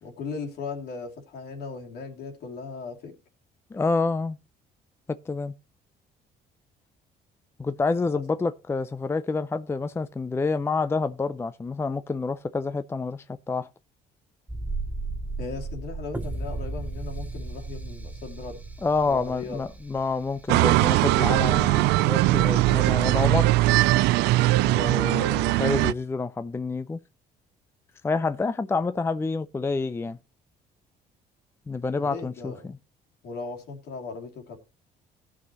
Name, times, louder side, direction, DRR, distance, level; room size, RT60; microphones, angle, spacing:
voice 1, 0.0-3.1 8.1-8.2 15.4-18.6 19.0-19.6 31.9-32.6 33.2-34.6, left 4 dB, 70° left, 2.8 m, -37 dB
voice 2, 3.7-4.4 5.3-5.5 7.6-13.7 18.8-23.5 24.6-27.0 28.0-30.2 31.7-32.8, left 4 dB, 15° left, 0.5 m, -28 dB
sound 1, 14.5-21.3 21.6-21.7, right 3 dB, 10° right, 0.9 m, -35 dB
sound 2, 20.5-25.9, right 18 dB, 85° right, 0.4 m, -20 dB
17.5 x 6.2 x 3.0 m
cardioid pair, 110°, 17 cm